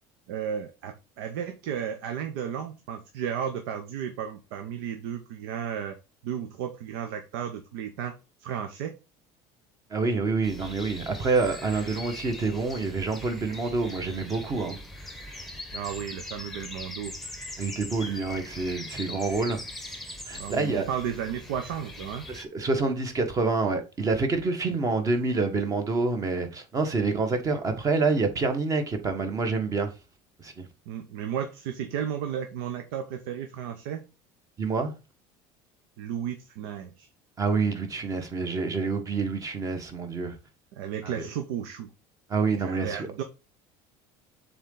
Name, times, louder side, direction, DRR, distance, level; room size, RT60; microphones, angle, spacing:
voice 1, 0.3-6.0 6.2-8.1 8.4-8.9 15.7-17.1 20.3-22.2 30.9-34.0 36.0-37.1 40.8-41.9 42.6-43.2, right 8 dB, 90° right, 0.9 m, -33 dB
voice 2, 9.9-14.8 17.6-19.6 20.3-20.9 22.3-29.9 30.4-30.7 34.6-34.9 37.4-40.4 41.0-41.3 42.3-43.1, right 4 dB, 30° right, 1.4 m, -27 dB
sound 1, 10.4-22.4, left 1 dB, ahead, 1.0 m, -41 dB
6.8 x 3.9 x 3.9 m
cardioid pair, 135°, 12 cm